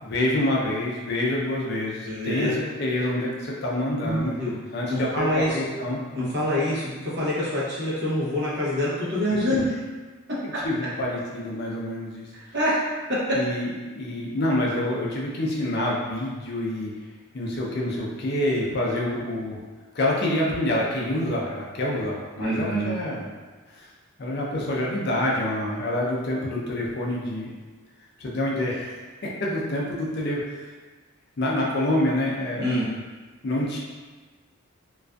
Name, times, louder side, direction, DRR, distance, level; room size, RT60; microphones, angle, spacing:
voice 1, 0.0-4.3 4.7-6.0 10.6-12.3 13.3-16.9 17.3-19.6 19.9-23.3 23.7-23.9 24.2-27.5 28.2-30.7 31.4-32.7 33.4-33.8, left 1 dB, 50° left, -3 dB, 0.4 m, -27 dB
voice 2, 2.0-2.6 4.0-4.6 4.9-5.6 6.1-9.6 12.5-12.8 22.4-23.0 32.6-32.9, left 1 dB, 55° right, -8 dB, 0.8 m, -26 dB
2.5 x 2.3 x 2.2 m, 1.3 s
head